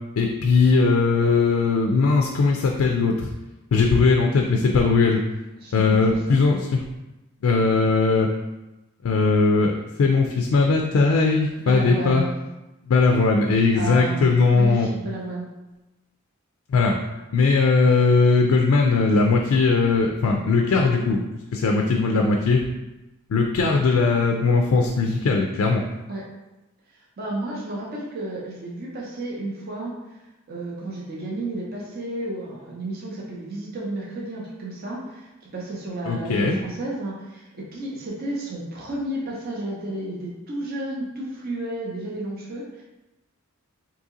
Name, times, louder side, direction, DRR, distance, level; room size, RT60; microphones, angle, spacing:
voice 1, 0.2-3.3 3.7-5.2 5.7-6.6 7.4-8.3 9.0-9.7 10.0-12.2 12.9-14.9 16.7-17.0 17.3-21.2 21.5-22.6 23.3-25.8 36.1-36.6, left 4 dB, 75° left, 2 dB, 0.3 m, -19 dB
voice 2, 5.6-6.4 11.6-12.4 13.7-15.5 26.1-26.2 26.9-30.2 30.5-42.8, right 1 dB, 45° right, -4 dB, 0.6 m, -32 dB
2.8 x 2.7 x 3.6 m, 1.0 s
head